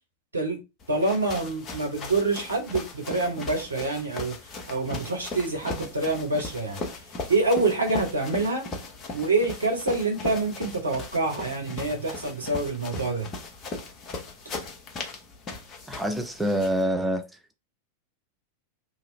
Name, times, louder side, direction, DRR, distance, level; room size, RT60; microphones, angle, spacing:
sound 1, 0.8-16.8, left 3 dB, 30° left, 0.7 m, -38 dB
voice 1, 0.9-4.4 4.7-6.8 7.3-8.6 9.1-13.3, right 2 dB, 80° right, 1.0 m, -26 dB
voice 2, 15.9-17.3, equal, 5° right, 0.4 m, -26 dB
2.8 x 2.4 x 3.2 m
figure-of-eight pair, 90°, 0 cm